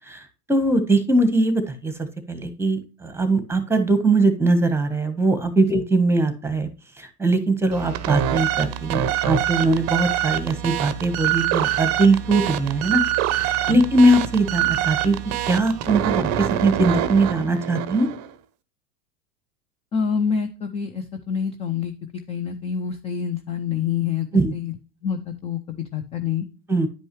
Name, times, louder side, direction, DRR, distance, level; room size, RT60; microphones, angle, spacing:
voice 1, 0.5-6.7 7.0-13.0 13.4-15.2 15.5-18.1 24.3-24.5 26.7-26.9, right 2 dB, 5° right, 10 dB, 1.2 m, -21 dB
sound 1, 7.7-18.3, right 12 dB, 35° right, 0.7 m, -25 dB
voice 2, 19.9-21.9 22.3-24.3 24.5-24.7 25.0-26.5, left 7 dB, 15° left, 8 dB, 0.4 m, -26 dB
10.0 x 5.4 x 3.1 m, 0.35 s
hypercardioid pair, 100°, 47 cm